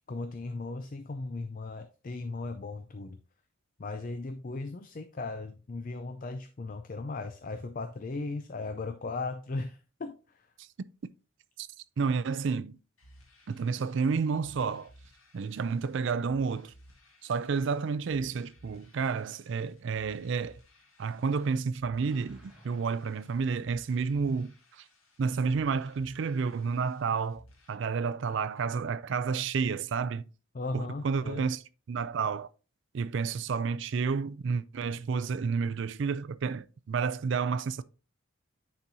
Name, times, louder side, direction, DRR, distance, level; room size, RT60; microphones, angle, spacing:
voice 1, 0.1-3.2 3.8-10.4 30.5-31.5, left 3 dB, 40° left, 0.4 m, -37 dB
voice 2, 12.0-12.8 13.5-14.9 15.3-16.7 17.2-20.6 21.0-24.8 25.2-27.4 27.7-30.3 30.7-31.6 31.9-32.5 32.9-37.8, right 5 dB, 55° right, 0.4 m, -30 dB
sound 1, 13.0-27.7, equal, 75° left, 1.9 m, -59 dB
Explosion, 22.0-24.2, right 1 dB, 5° right, 1.4 m, -59 dB
9.7 x 4.3 x 2.7 m
head